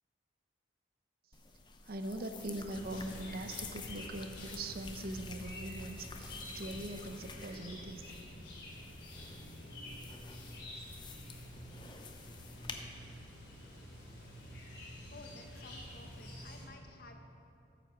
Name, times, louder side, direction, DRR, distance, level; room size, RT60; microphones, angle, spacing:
sound 1, 1.3-12.8, left 4 dB, 25° left, 0.6 m, -50 dB
voice 1, 1.8-8.1, right 1 dB, 50° right, 7 dB, 0.7 m, -42 dB
Chirp tweet, 2.7-16.6, left 1 dB, 70° left, 2.8 m, -49 dB
voice 2, 15.0-17.2, left 2 dB, 50° left, 4 dB, 1.0 m, -54 dB
9.2 x 7.7 x 6.9 m, 2.7 s
head